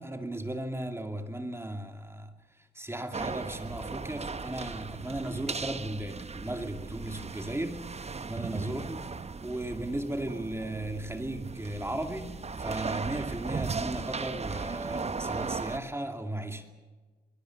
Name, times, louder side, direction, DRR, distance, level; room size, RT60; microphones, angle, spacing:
voice 1, 0.0-2.3 2.7-9.0 9.4-16.7, right 1 dB, 15° right, 2.4 m, -36 dB
sound 1, 3.1-15.8, right 4 dB, 35° right, 0.9 m, -37 dB
24.0 x 21.0 x 7.2 m
cardioid pair, 90°, 18 cm